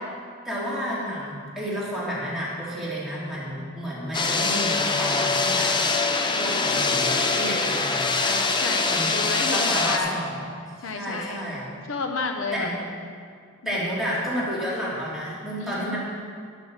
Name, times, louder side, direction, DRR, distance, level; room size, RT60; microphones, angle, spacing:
voice 1, 0.4-5.7 6.3-8.3 8.9-9.1 9.5-10.4 10.9-11.7 12.5-12.7 13.6-16.0, equal, ahead, -8 dB, 3.2 m, -31 dB
sound 1, 4.1-10.0, left 3 dB, 20° left, 0.7 m, -23 dB
voice 2, 8.2-10.2 10.8-11.4 11.9-12.7 13.6-13.8 15.6-16.0, left 4 dB, 65° left, 4 dB, 0.8 m, -31 dB
11.0 x 6.6 x 7.2 m, 2.1 s
head